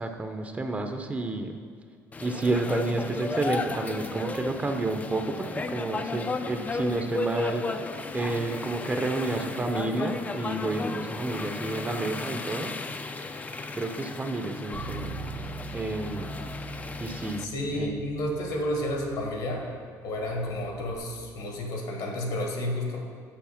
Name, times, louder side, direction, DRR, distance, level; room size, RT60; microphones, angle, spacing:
voice 1, 0.0-1.6 2.2-12.7 13.8-15.1 15.7-16.3 17.0-17.4 17.7-17.9, right 2 dB, 20° right, 5 dB, 0.7 m, -30 dB
sound 1, 2.1-17.4, left 3 dB, 20° left, 0.5 m, -34 dB
Bass guitar, 14.7-21.0, right 4 dB, 75° right, 1.4 m, -43 dB
voice 2, 17.4-19.7 20.0-23.1, left 1 dB, 70° left, 1 dB, 1.8 m, -31 dB
7.1 x 6.3 x 5.9 m, 2.1 s
cardioid pair, 115°, 7 cm